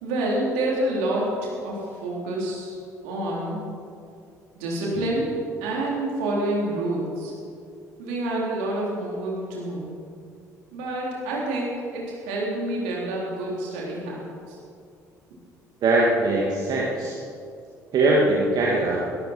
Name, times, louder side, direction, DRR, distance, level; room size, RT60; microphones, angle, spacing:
voice 1, 0.0-2.8 3.0-3.6 4.5-5.3 5.6-7.3 8.0-10.0 10.7-14.2 14.5-14.6, right 1 dB, 65° right, -3 dB, 3.9 m, -28 dB
voice 2, 15.8-17.2 17.9-19.0, right 2 dB, 50° right, -3 dB, 2.0 m, -21 dB
21.0 x 13.0 x 4.6 m, 2.4 s
figure-of-eight pair, 50°, 9 cm